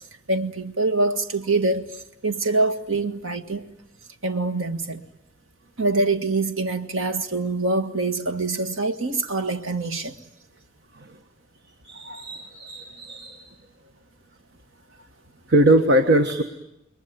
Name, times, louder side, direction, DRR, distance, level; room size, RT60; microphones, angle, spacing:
voice 1, 0.3-1.9 2.2-3.7 4.2-5.0 5.8-10.2, right 2 dB, 75° right, 1.7 m, -24 dB
voice 2, 11.8-13.5 15.5-16.4, right 1 dB, 55° right, 1.4 m, -21 dB
28.0 x 21.5 x 9.2 m
head